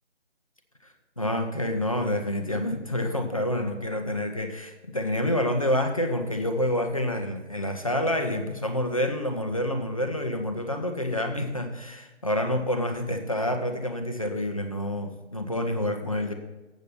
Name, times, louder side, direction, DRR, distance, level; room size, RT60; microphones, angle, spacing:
voice 1, 1.2-16.3, left 1 dB, 30° left, 5 dB, 0.7 m, -28 dB
8.1 x 6.9 x 5.9 m, 1.2 s
figure-of-eight pair, 170°, 35 cm